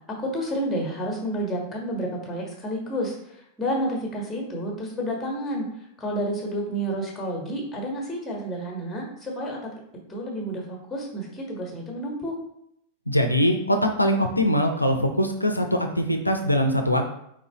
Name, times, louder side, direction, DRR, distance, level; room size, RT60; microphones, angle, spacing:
voice 1, 0.2-5.6 6.0-9.6 10.1-12.4, equal, 10° left, -1 dB, 1.4 m, -30 dB
voice 2, 13.1-17.0, equal, 85° left, 5 dB, 0.3 m, -22 dB
4.4 x 3.8 x 2.9 m, 0.75 s
figure-of-eight pair, 90°, 0 cm